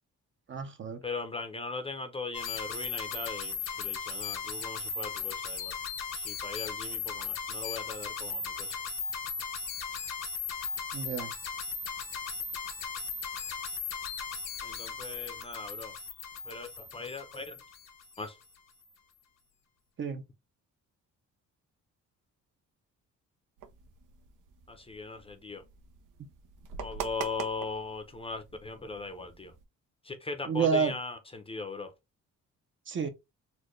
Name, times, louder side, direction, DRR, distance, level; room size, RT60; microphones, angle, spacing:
voice 1, 0.5-1.0 10.9-11.3 20.0-20.2 30.4-30.9 32.9-33.1, right 5 dB, 40° right, 0.7 m, -29 dB
voice 2, 1.0-5.8 6.1-8.8 14.6-15.9 16.5-17.6 18.2-18.4 24.7-25.6 26.8-29.5 30.0-31.9, left 3 dB, 20° left, 0.6 m, -39 dB
sound 1, 2.3-18.2, left 5 dB, 90° left, 1.3 m, -37 dB
sound 2, 23.6-29.6, right 7 dB, 80° right, 0.7 m, -44 dB
4.3 x 2.2 x 3.0 m
cardioid pair, 145°, 31 cm